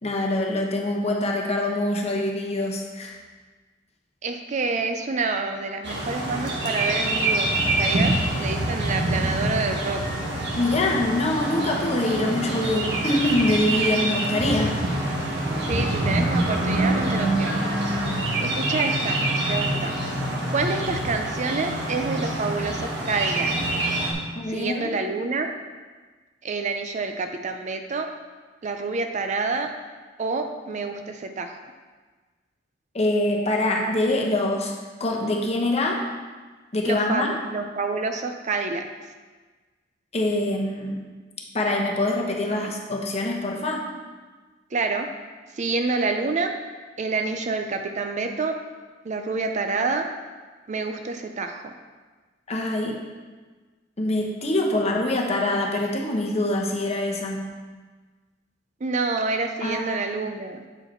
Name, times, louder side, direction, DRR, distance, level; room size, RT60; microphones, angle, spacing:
voice 1, 0.0-3.1 10.5-14.8 24.3-24.9 32.9-34.7 35.0-36.0 36.7-37.4 40.1-41.0 41.5-43.9 52.5-53.0 54.0-57.5 59.6-60.0, left 1 dB, 35° left, 0 dB, 1.0 m, -24 dB
voice 2, 4.2-7.5 7.8-10.0 15.7-17.6 18.4-19.9 20.5-23.5 24.5-25.5 26.4-28.1 28.6-29.7 30.2-31.5 36.8-38.8 44.7-45.1 45.6-46.5 47.0-48.5 49.1-50.1 50.7-51.6 58.8-60.6, right 3 dB, 40° right, 6 dB, 0.5 m, -27 dB
sound 1, 5.8-24.1, right 1 dB, 65° right, 1.3 m, -25 dB
7.8 x 4.7 x 4.4 m, 1.4 s
head